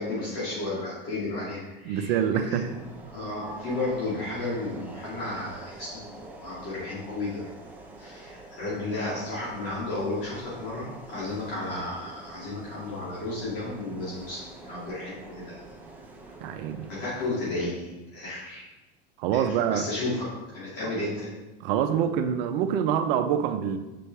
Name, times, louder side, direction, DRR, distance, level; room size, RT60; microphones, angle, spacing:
voice 1, 0.0-2.7 3.1-7.5 8.0-15.6 16.9-18.7 19.3-21.3, left 2 dB, 55° left, -8 dB, 2.4 m, -33 dB
voice 2, 1.9-2.7 16.4-16.9 19.2-19.8 20.8-20.9 21.6-23.8, right 8 dB, 70° right, 7 dB, 0.8 m, -26 dB
sound 1, 2.6-17.5, right 2 dB, 5° right, 0.8 m, -46 dB
6.6 x 5.5 x 3.3 m, 1.0 s
supercardioid pair, 125°, 30 cm